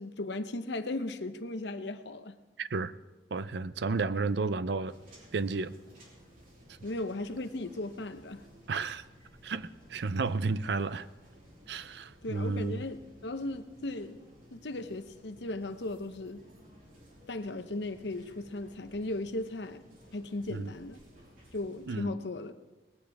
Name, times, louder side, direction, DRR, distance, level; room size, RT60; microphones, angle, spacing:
voice 1, 0.0-2.4 6.8-8.4 12.2-14.2 14.5-16.4 17.3-19.8 20.1-21.0 21.5-22.5, left 2 dB, 80° left, 0.8 m, -37 dB
voice 2, 2.6-2.9 3.3-4.9 5.3-5.7 8.7-9.0 9.4-11.1 11.7-12.8 20.5-20.7 21.9-22.1, right 4 dB, 70° right, 0.5 m, -32 dB
sound 1, 4.9-21.9, equal, 50° right, 3.3 m, -57 dB
19.5 x 15.0 x 3.5 m
head